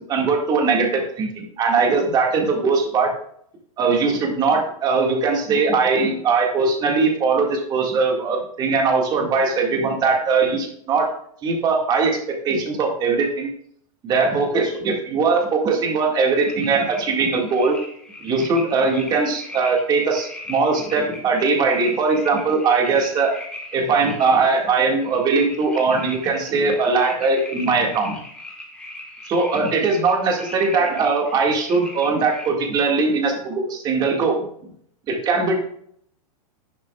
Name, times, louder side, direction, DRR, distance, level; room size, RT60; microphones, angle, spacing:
voice 1, 0.1-1.3 1.6-3.1 3.8-11.1 11.4-12.2 12.4-13.5 14.0-17.8 18.2-23.3 23.7-28.2 29.3-34.7 35.1-35.5, right 4 dB, 20° right, 1 dB, 2.0 m, -20 dB
sound 1, 16.4-32.5, left 1 dB, 5° left, 1.5 m, -39 dB
11.0 x 9.8 x 2.4 m, 0.66 s
supercardioid pair, 155°, 18 cm